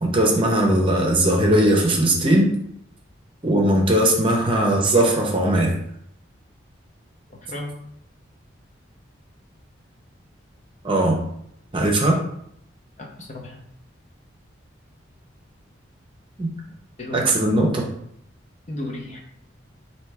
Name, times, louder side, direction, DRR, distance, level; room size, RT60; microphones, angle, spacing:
voice 1, 0.0-2.5 3.4-5.8 10.8-11.2 11.7-12.2 16.4-16.5 17.1-17.9, right 1 dB, 25° right, -1 dB, 0.7 m, -19 dB
voice 2, 7.3-7.8 13.0-13.6 17.0-17.3 18.7-19.2, left 1 dB, 35° left, 0 dB, 0.6 m, -34 dB
4.4 x 2.7 x 3.4 m, 0.72 s
head